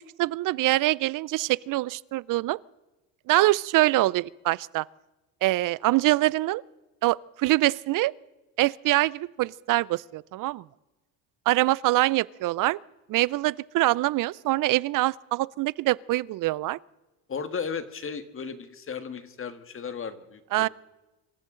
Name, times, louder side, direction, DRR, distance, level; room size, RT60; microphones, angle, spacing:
voice 1, 0.2-2.6 3.3-4.9 5.4-6.6 7.0-8.1 8.6-10.6 11.5-12.8 13.1-16.8 20.5-20.7, right 18 dB, 50° right, 0.5 m, -24 dB
voice 2, 17.3-20.7, left 6 dB, 30° left, 1.6 m, -35 dB
26.0 x 14.5 x 3.8 m
cardioid pair, 115°, 42 cm